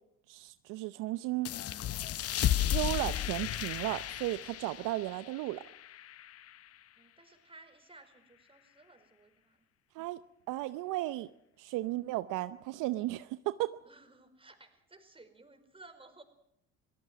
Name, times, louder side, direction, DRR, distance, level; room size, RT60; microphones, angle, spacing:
voice 1, 0.3-1.5 2.3-5.6 9.9-10.2 10.5-11.3 11.6-13.8, right 17 dB, 70° right, 13 dB, 0.8 m, -35 dB
sound 1, 1.4-6.7, left 12 dB, 45° left, 0.8 m, -34 dB
voice 2, 7.0-9.7 13.8-16.2, right 2 dB, 15° right, 7 dB, 4.9 m, -57 dB
26.5 x 17.5 x 6.1 m, 0.77 s
hypercardioid pair, 70°, 33 cm